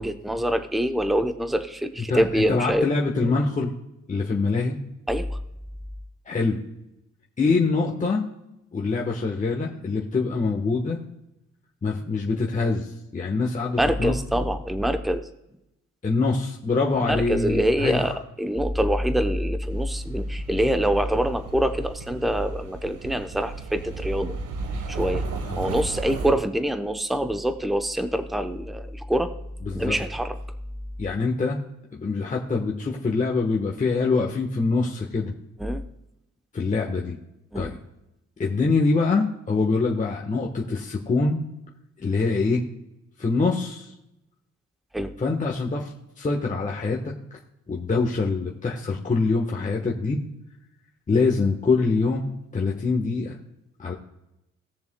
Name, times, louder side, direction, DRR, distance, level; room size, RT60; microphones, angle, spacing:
voice 1, 0.0-2.9 5.1-5.4 13.8-15.3 17.0-24.3 24.9-25.2 25.6-29.3 29.7-30.4 35.6-35.8 37.5-37.7 44.9-45.1, equal, ahead, 8 dB, 0.7 m, -25 dB
voice 2, 2.1-3.7 4.1-4.8 6.3-6.6 7.4-8.2 8.7-11.0 11.8-12.9 13.1-14.1 16.0-18.2 25.4-25.7 29.7-30.0 31.0-31.6 31.9-35.3 36.5-37.2 37.5-37.8 38.4-41.4 42.0-42.6 43.2-43.9 45.2-47.1 47.7-50.2 51.1-52.2 52.5-53.4 53.8-53.9, left 4 dB, 25° left, -1 dB, 1.1 m, -24 dB
sound 1, 19.7-26.3, right 3 dB, 85° right, 1.2 m, -34 dB
19.5 x 6.9 x 2.2 m, 0.88 s
cardioid pair, 110°, 30 cm